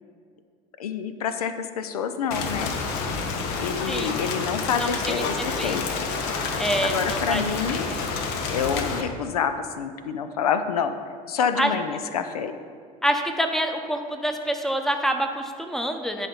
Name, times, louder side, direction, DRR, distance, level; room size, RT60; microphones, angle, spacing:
voice 1, 0.8-2.7 3.6-6.1 6.8-8.0 8.5-10.9 11.3-12.5, left 7 dB, 80° left, 10 dB, 0.5 m, -27 dB
Rain, 2.3-9.0, left 4 dB, 60° left, 0.9 m, -29 dB
voice 2, 6.6-7.4 7.9-8.0 11.6-11.7 13.0-16.3, right 1 dB, ahead, 5 dB, 0.8 m, -26 dB
10.5 x 5.0 x 3.9 m, 2.1 s
hypercardioid pair, 70°, 19 cm